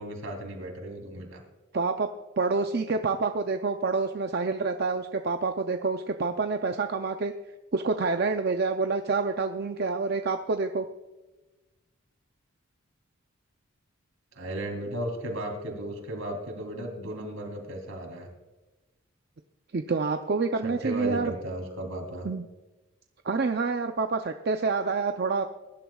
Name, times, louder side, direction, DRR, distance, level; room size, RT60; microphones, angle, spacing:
voice 1, 0.0-1.4 14.3-18.3 20.6-22.3, right 1 dB, 70° right, 2 dB, 3.2 m, -35 dB
voice 2, 1.7-2.1 2.4-7.3 7.7-10.9 19.7-21.3 22.2-22.5 23.2-25.5, right 4 dB, 45° right, 6 dB, 0.5 m, -27 dB
21.0 x 11.5 x 2.3 m, 1.1 s
head